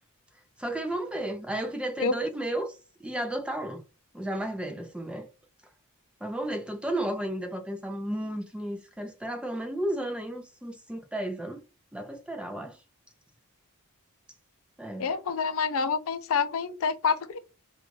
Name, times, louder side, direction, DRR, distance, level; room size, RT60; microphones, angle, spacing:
voice 1, 0.6-2.7 3.0-3.8 4.1-5.3 6.2-11.6 11.9-12.8 14.8-15.1, right 1 dB, 5° right, 0.4 m, -33 dB
voice 2, 15.0-17.4, left 5 dB, 65° left, 0.5 m, -27 dB
2.4 x 2.3 x 3.1 m
head